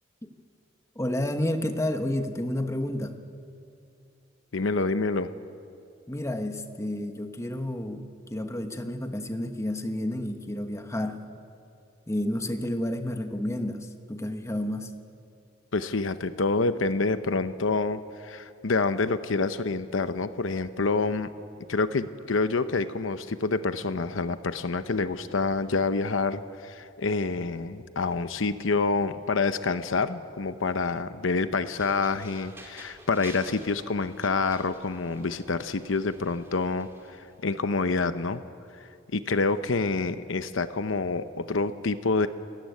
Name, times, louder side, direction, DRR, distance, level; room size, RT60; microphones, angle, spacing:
voice 1, 0.9-3.2 6.1-11.2 12.1-14.9, left 1 dB, 15° left, 6 dB, 1.3 m, -30 dB
voice 2, 4.5-5.3 15.7-21.3 21.7-38.4 38.7-42.3, left 3 dB, 85° left, 12 dB, 0.8 m, -27 dB
sound 1, 31.8-37.4, right 2 dB, 15° right, 2.3 m, -50 dB
29.0 x 14.0 x 9.4 m, 2.5 s
head